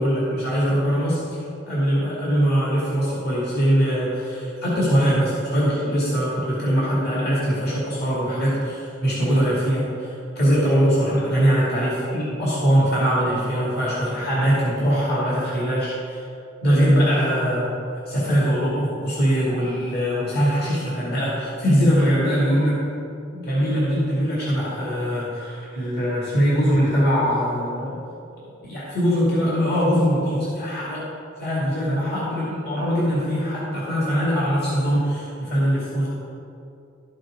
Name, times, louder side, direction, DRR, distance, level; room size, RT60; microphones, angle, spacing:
voice 1, 0.0-16.2 16.6-17.7 18.1-22.8 23.3-27.9 28.6-31.0 31.4-36.1, equal, 55° left, -8 dB, 2.4 m, -22 dB
12.5 x 6.6 x 5.0 m, 2.6 s
head